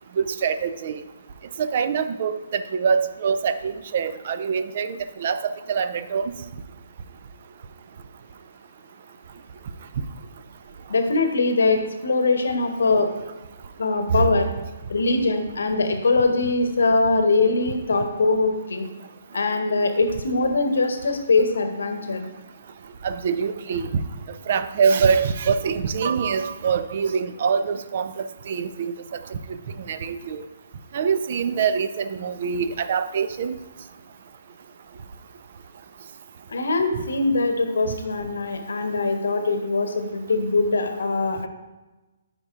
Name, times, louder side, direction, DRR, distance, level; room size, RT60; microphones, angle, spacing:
voice 1, 0.2-1.0 1.6-6.3 14.1-14.3 23.0-24.0 24.5-28.9 29.9-30.4 30.9-33.6 36.9-37.0, right 6 dB, 50° right, 12 dB, 0.4 m, -24 dB
voice 2, 10.9-13.1 13.8-14.5 14.9-18.9 19.3-22.2 36.5-41.5, left 3 dB, 75° left, 6 dB, 0.9 m, -22 dB
8.6 x 5.1 x 2.5 m, 1.1 s
figure-of-eight pair, 135°, 0 cm